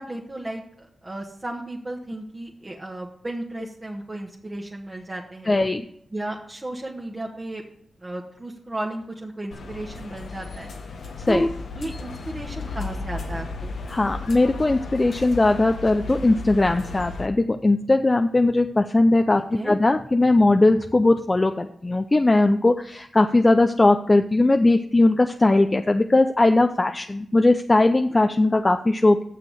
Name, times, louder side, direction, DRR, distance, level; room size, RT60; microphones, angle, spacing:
voice 1, 0.0-5.6 6.1-7.6 8.0-10.7 11.3-11.5 11.7-13.7 19.5-19.7, right 1 dB, 30° right, -2 dB, 1.4 m, -34 dB
voice 2, 5.5-5.8 11.3-11.5 13.9-29.2, left 2 dB, 30° left, 7 dB, 0.5 m, -19 dB
sound 1, 9.5-17.3, left 3 dB, 75° left, 1.1 m, -35 dB
7.8 x 6.7 x 6.3 m, 0.68 s
cardioid pair, 50°, 0 cm